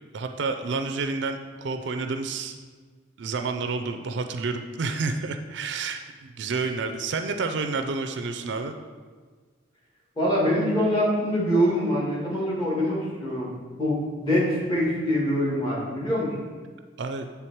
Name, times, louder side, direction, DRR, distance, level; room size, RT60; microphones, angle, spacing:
voice 1, 0.1-2.5 3.2-8.7 17.0-17.3, right 4 dB, 65° right, 6 dB, 0.4 m, -29 dB
voice 2, 10.2-13.5 13.8-16.3, equal, 20° left, -6 dB, 1.7 m, -24 dB
7.9 x 3.5 x 4.5 m, 1.5 s
head